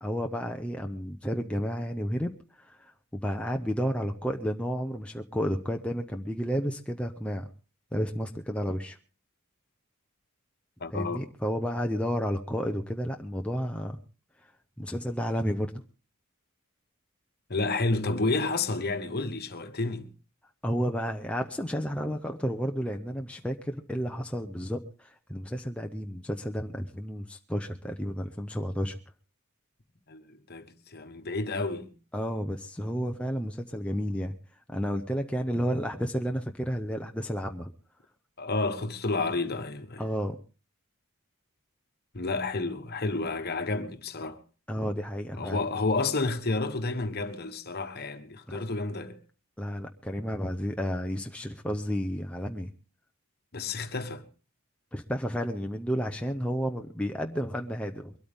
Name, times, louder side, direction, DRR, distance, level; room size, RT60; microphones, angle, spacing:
voice 1, 0.0-7.5 7.9-9.0 10.9-14.0 14.8-15.7 20.6-29.0 32.1-34.3 34.7-37.7 40.0-40.4 44.7-45.6 48.5-48.6 49.6-52.7 54.9-58.1, equal, 5° left, 0.7 m, -31 dB
voice 2, 10.8-11.2 17.5-20.1 30.1-31.9 38.4-40.0 42.1-44.4 45.4-49.2 53.5-54.2, left 3 dB, 45° left, 1.3 m, -30 dB
23.0 x 13.0 x 3.6 m
head